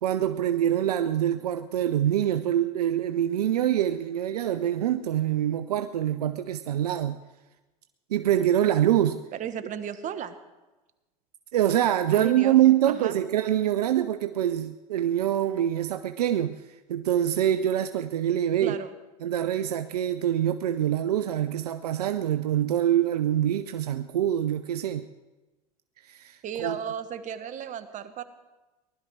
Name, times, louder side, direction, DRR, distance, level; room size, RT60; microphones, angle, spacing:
voice 1, 0.0-7.2 8.1-9.2 11.5-16.6 16.9-18.8 19.2-25.1 26.0-26.8, right 11 dB, 85° right, 10 dB, 0.6 m, -25 dB
voice 2, 9.4-10.4 12.1-12.6 12.9-13.1 18.6-18.9 26.4-28.2, right 8 dB, 40° right, 11 dB, 1.3 m, -34 dB
19.5 x 12.0 x 4.6 m, 1.1 s
hypercardioid pair, 90°, 20 cm